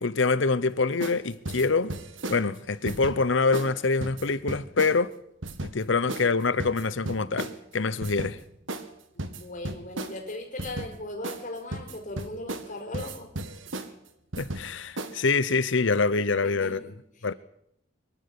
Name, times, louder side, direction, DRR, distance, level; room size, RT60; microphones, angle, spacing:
voice 1, 0.0-1.9 2.3-5.1 5.6-8.4 14.4-16.9 17.2-17.3, left 4 dB, 75° left, 0.9 m, -25 dB
sound 1, 1.0-1.2 1.5-2.4 2.9-3.2 3.5-3.7 4.0-4.9 5.4-5.7 6.1-6.3 6.6-7.6 8.0-8.4 8.7-8.9 9.2-10.2 10.6-10.9 11.2-11.5 11.7-12.7 12.9-13.9 14.3-14.7 15.0-15.3, right 2 dB, 85° right, 1.9 m, -34 dB
voice 2, 9.1-13.3 16.4-17.4, left 1 dB, 40° left, 5.3 m, -39 dB
24.0 x 12.0 x 9.7 m
head